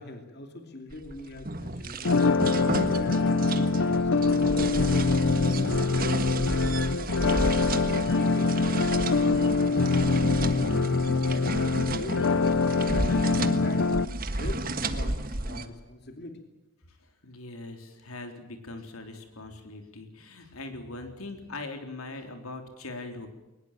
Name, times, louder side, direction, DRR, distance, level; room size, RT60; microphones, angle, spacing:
voice 1, 0.0-2.4 2.8-5.0 5.5-7.6 8.1-10.5 11.0-13.9 14.3-16.4, left 2 dB, 50° left, 5 dB, 2.8 m, -43 dB
sound 1, 0.9-15.7, right 2 dB, 40° right, 1.5 m, -33 dB
sound 2, 2.0-14.0, left 3 dB, 70° left, 0.7 m, -24 dB
voice 2, 17.0-23.3, left 2 dB, 90° left, 5 dB, 3.7 m, -41 dB
22.0 x 20.5 x 7.5 m, 1.0 s
head